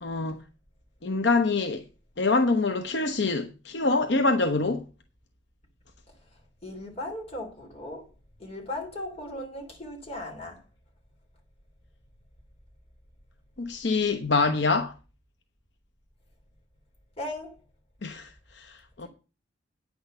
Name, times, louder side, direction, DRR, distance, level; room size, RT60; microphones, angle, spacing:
voice 1, 0.0-0.4 1.0-1.8 2.2-4.9 13.6-14.9 18.0-19.1, left 3 dB, 60° left, 0.8 m, -25 dB
voice 2, 6.6-8.0 8.4-10.6 17.2-17.6 19.0-19.1, left 1 dB, 30° left, 3.3 m, -37 dB
9.3 x 6.2 x 6.6 m
head